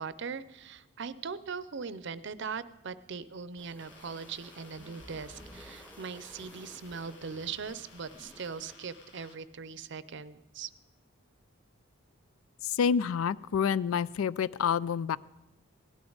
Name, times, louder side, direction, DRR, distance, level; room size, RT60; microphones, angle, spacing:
voice 1, 0.0-10.7, right 5 dB, 60° right, 16 dB, 0.6 m, -40 dB
sound 1, 3.6-8.8, equal, 10° left, 1.0 m, -53 dB
sound 2, 3.8-9.4, left 4 dB, 60° left, 1.9 m, -57 dB
sound 3, 6.4-7.6, left 1 dB, 40° left, 1.4 m, -60 dB
voice 2, 12.6-15.2, left 7 dB, 85° left, 19 dB, 0.4 m, -28 dB
17.5 x 12.0 x 3.9 m, 1.0 s
head